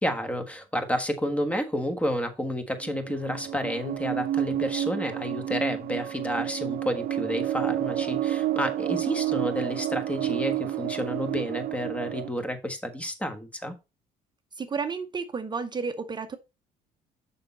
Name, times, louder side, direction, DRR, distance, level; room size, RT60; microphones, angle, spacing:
voice 1, 0.0-13.7, equal, 10° left, 1.3 m, -30 dB
sound 1, 2.8-12.3, right 12 dB, 65° right, 0.6 m, -30 dB
voice 2, 14.6-16.4, right 5 dB, 25° right, 0.7 m, -32 dB
6.6 x 5.5 x 4.0 m
cardioid pair, 110°, 17 cm